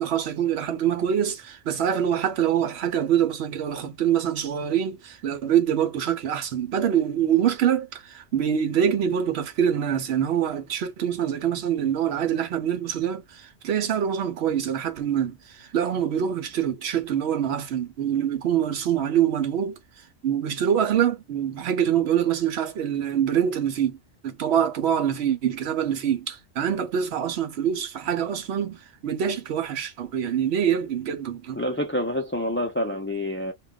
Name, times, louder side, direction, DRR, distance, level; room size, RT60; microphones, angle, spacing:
voice 1, 0.0-19.7 20.2-24.0 24.2-31.6, right 9 dB, 65° right, 0.8 m, -25 dB
voice 2, 31.6-33.5, left 1 dB, 20° left, 0.3 m, -27 dB
2.3 x 2.2 x 3.7 m
omnidirectional pair, 1.2 m